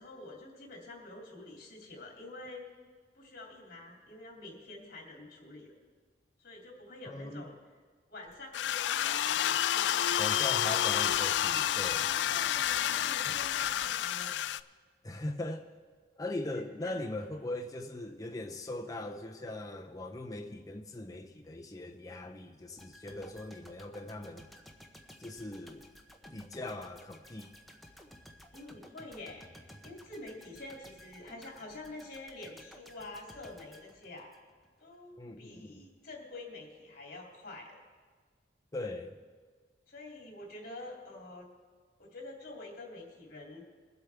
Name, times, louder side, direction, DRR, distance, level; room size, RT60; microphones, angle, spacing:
voice 1, 0.0-2.6 3.1-5.7 6.4-7.5 8.1-10.8 11.9-14.4 16.5-17.1 28.5-29.5 29.8-34.3 34.8-37.8 39.9-41.5 42.0-43.6, left 2 dB, 55° left, -1 dB, 2.7 m, -47 dB
voice 2, 7.0-7.5 10.2-12.1 13.3-13.4 15.0-15.7 16.2-24.5 25.2-25.9 26.3-27.5 35.2-35.9 38.7-39.2, left 2 dB, 20° left, 2 dB, 0.6 m, -40 dB
sound 1, 8.5-14.6, left 11 dB, 80° left, 0.3 m, -29 dB
sound 2, 22.8-34.8 35.1-35.3, equal, ahead, 0.9 m, -55 dB
22.5 x 8.1 x 3.5 m, 1.5 s
head